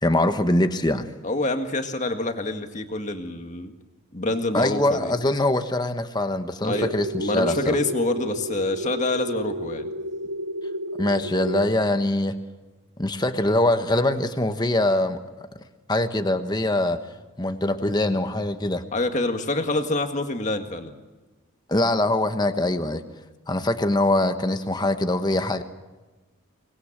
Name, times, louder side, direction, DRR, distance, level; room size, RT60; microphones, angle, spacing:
voice 1, 0.0-1.1 4.5-7.8 11.0-12.4 13.0-15.5 15.9-17.0 17.4-18.8 21.7-23.0 23.5-25.6, left 1 dB, 20° left, 8 dB, 1.2 m, -23 dB
voice 2, 1.2-3.7 4.1-5.1 6.6-6.9 7.2-9.9 18.9-21.0, left 2 dB, 35° left, 6 dB, 1.9 m, -26 dB
sound 1, 6.7-11.7, equal, 85° right, 0.9 m, -31 dB
25.5 x 20.0 x 7.4 m, 1.2 s
head